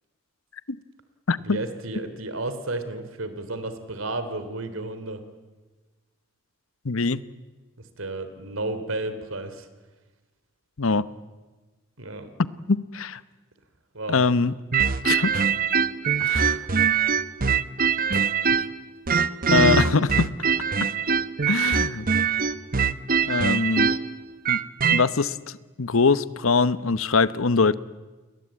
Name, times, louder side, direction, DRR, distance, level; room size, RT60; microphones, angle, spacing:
voice 1, 1.4-5.2 8.0-9.7 12.0-12.3 13.9-14.2, right 2 dB, 85° right, 10 dB, 3.2 m, -32 dB
voice 2, 6.8-7.2 10.8-11.1 12.7-13.2 14.1-14.5 15.0-15.5 16.2-16.6 18.1-18.2 19.5-20.3 21.5-22.1 23.2-23.9 24.5-24.6 24.9-25.4 25.8-27.8, left 4 dB, 90° left, 16 dB, 1.0 m, -22 dB
sound 1, 14.7-18.8 19.1-25.0, right 6 dB, 45° right, 0.9 m, -22 dB
30.0 x 22.0 x 8.9 m, 1.3 s
head